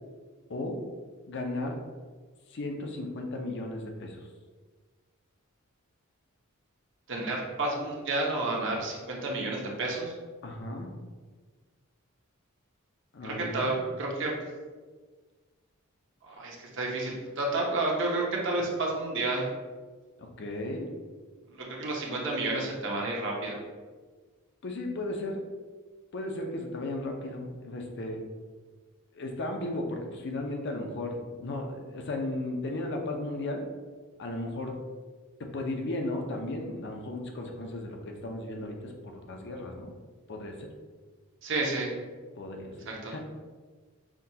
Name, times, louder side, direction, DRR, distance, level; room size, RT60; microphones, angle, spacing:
voice 1, 1.3-1.8 2.5-4.2 10.4-10.9 13.1-13.8 20.2-20.9 24.6-25.4 26.1-28.2 29.1-33.7 34.2-34.7 35.4-39.9 40.3-40.7 42.4-43.2, left 2 dB, 55° left, 2 dB, 0.6 m, -35 dB
voice 2, 7.1-10.1 13.2-14.4 16.3-19.5 21.5-23.6 41.4-41.9 42.9-43.1, right 2 dB, 60° right, -1 dB, 0.8 m, -30 dB
5.8 x 2.3 x 2.7 m, 1.4 s
head